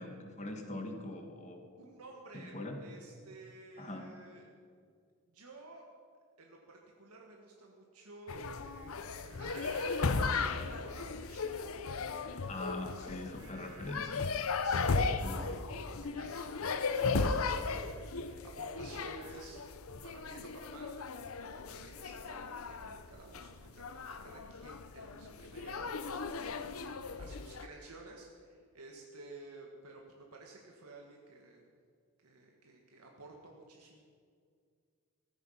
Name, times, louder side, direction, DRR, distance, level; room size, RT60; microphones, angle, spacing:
voice 1, 0.0-1.6 2.3-2.8 3.8-4.1 12.5-14.3 15.2-15.5, left 1 dB, 30° left, 4 dB, 1.9 m, -42 dB
voice 2, 1.8-4.5 5.3-5.8 6.4-11.5 14.6-19.6 20.0-31.7 32.2-34.0, right 2 dB, 90° right, 0 dB, 1.7 m, -53 dB
sound 1, 8.3-27.7, left 4 dB, 70° left, 0.7 m, -36 dB
sound 2, 9.2-10.1 10.5-10.6 10.8-14.4, right 4 dB, 65° right, 1.9 m, -55 dB
16.0 x 14.0 x 5.8 m, 2.1 s
head